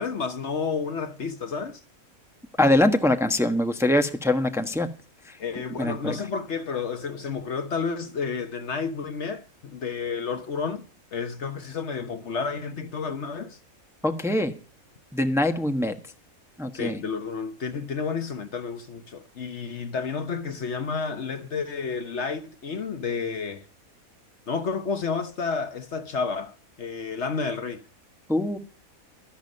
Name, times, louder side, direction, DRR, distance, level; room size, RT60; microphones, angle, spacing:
voice 1, 0.0-1.8 5.4-10.9 11.1-13.6 16.7-23.6 24.5-27.8, left 5 dB, 55° left, 1.2 m, -31 dB
voice 2, 2.6-4.9 5.3-5.4 5.8-6.2 14.0-14.5 15.1-16.0 16.6-17.0 28.3-28.6, left 1 dB, ahead, 1.1 m, -23 dB
12.5 x 11.5 x 5.3 m
omnidirectional pair, 1.5 m